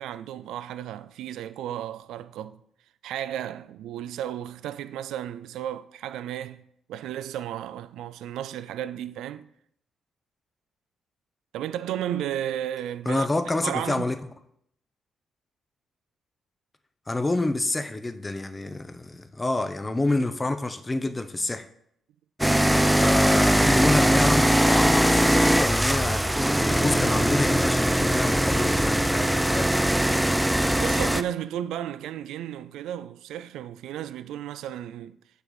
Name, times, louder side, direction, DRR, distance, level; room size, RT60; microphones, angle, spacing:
voice 1, 0.0-2.6 3.0-9.5 11.5-13.3 13.6-14.1 30.8-35.2, right 11 dB, 70° right, 0.3 m, -34 dB
voice 2, 13.1-14.2 17.1-21.7 22.9-29.9, left 2 dB, 25° left, 0.8 m, -28 dB
sound 1, 22.4-31.2, right 1 dB, 5° right, 0.5 m, -21 dB
6.8 x 4.6 x 6.9 m
hypercardioid pair, 40°, 0 cm